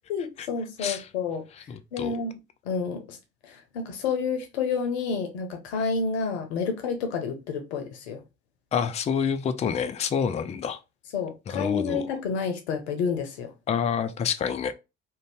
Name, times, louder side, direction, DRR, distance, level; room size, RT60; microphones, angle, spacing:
voice 1, 0.1-1.4 1.9-2.3 2.7-3.2 3.5-8.2 11.1-13.5, left 5 dB, 70° left, 0.6 m, -29 dB
voice 2, 0.8-1.1 1.5-2.2 8.7-10.8 11.5-12.1 13.7-14.7, left 7 dB, 20° left, 0.3 m, -28 dB
2.5 x 2.1 x 3.3 m
figure-of-eight pair, 50°, 34 cm